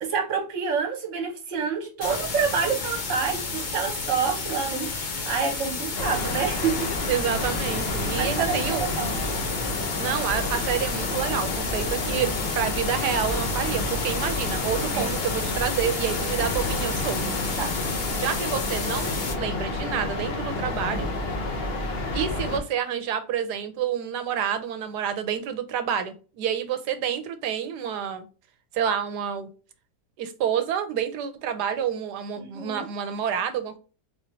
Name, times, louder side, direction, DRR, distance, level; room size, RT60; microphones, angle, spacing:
voice 1, 0.0-4.9 5.2-6.9 8.2-9.2 12.1-12.3 14.9-15.1 17.6-17.7 32.4-32.9, right 6 dB, 50° right, 2 dB, 1.3 m, -28 dB
sound 1, 2.0-19.4, left 4 dB, 60° left, 0.5 m, -32 dB
sound 2, 5.9-22.6, left 2 dB, 45° left, 0.9 m, -30 dB
voice 2, 7.1-8.9 10.0-17.3 18.2-21.1 22.1-28.3 28.7-29.5 30.2-33.8, right 8 dB, 80° right, 9 dB, 1.2 m, -28 dB
3.9 x 3.1 x 2.7 m, 0.35 s
omnidirectional pair, 1.8 m